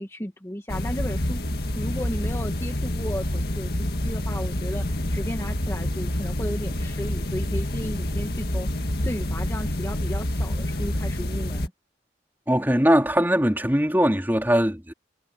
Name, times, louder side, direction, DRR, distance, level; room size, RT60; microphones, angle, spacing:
voice 1, 0.0-1.4 1.8-11.7, equal, 15° left, 1.8 m, -34 dB
sound 1, 0.7-11.7, left 1 dB, 55° left, 2.0 m, -27 dB
voice 2, 12.5-14.9, equal, 10° right, 3.4 m, -21 dB
head